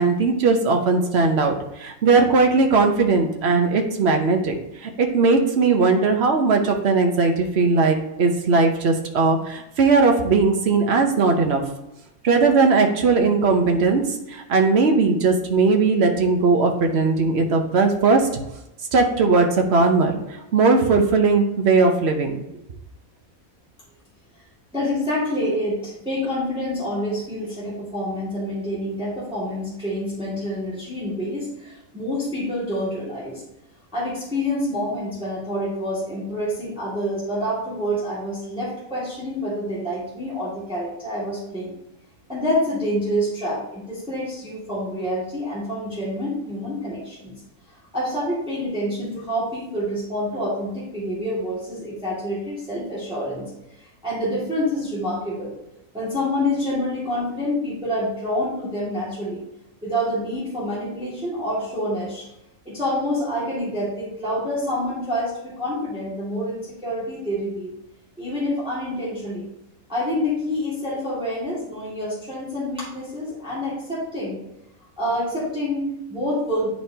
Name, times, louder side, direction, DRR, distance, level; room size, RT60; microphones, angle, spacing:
voice 1, 0.0-4.6 4.8-11.6 12.2-14.0 14.3-18.3 18.9-20.2 20.5-22.4, right 4 dB, 50° right, 4 dB, 1.1 m, -18 dB
voice 2, 24.7-33.4 33.9-41.8 42.3-47.3 47.9-53.5 53.8-55.6 55.9-59.4 59.8-62.3 62.7-67.7 68.2-69.5 69.9-74.4 75.0-76.7, equal, 5° right, -8 dB, 2.0 m, -27 dB
9.4 x 4.4 x 2.8 m, 0.86 s
omnidirectional pair, 1.5 m